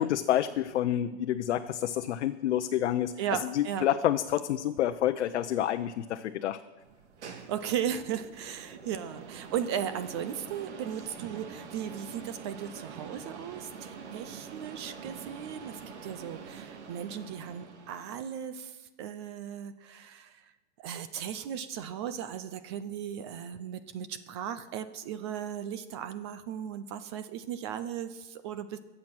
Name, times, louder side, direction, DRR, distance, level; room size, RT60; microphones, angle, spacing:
voice 1, 0.0-3.1 3.5-6.6, left 11 dB, 90° left, 7 dB, 0.7 m, -28 dB
voice 2, 3.2-3.9 7.3-20.5 20.8-28.8, right 9 dB, 25° right, 13 dB, 0.4 m, -36 dB
sound 1, 6.8-18.4, right 6 dB, 90° right, 2.0 m, -45 dB
22.0 x 7.6 x 6.1 m, 1.2 s
supercardioid pair, 160°, 34 cm